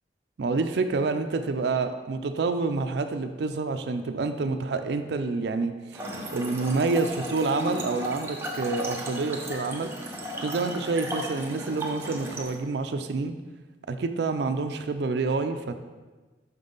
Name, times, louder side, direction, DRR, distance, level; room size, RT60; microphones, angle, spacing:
voice 1, 0.4-9.9 10.4-13.3 13.9-15.8, right 3 dB, 65° right, 8 dB, 0.4 m, -28 dB
Trickle dribble / Fill (with liquid), 5.9-12.6, equal, 15° right, 0.7 m, -35 dB
6.0 x 5.4 x 3.9 m, 1.2 s
head